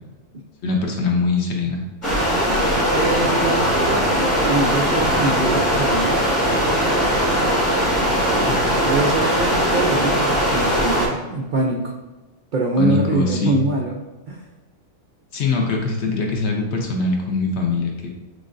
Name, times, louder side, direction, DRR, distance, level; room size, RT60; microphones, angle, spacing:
voice 1, 0.6-1.8 7.8-8.0 8.5-8.6 12.8-13.6 15.3-18.1, left 3 dB, 60° left, 1 dB, 0.9 m, -22 dB
sound 1, 2.0-11.1, equal, 25° left, 1.2 m, -19 dB
voice 2, 2.9-6.1 8.8-11.9 12.5-14.0 14.3-14.4, right 2 dB, 80° right, 0 dB, 0.4 m, -24 dB
6.0 x 2.4 x 2.5 m, 1.2 s
omnidirectional pair, 1.4 m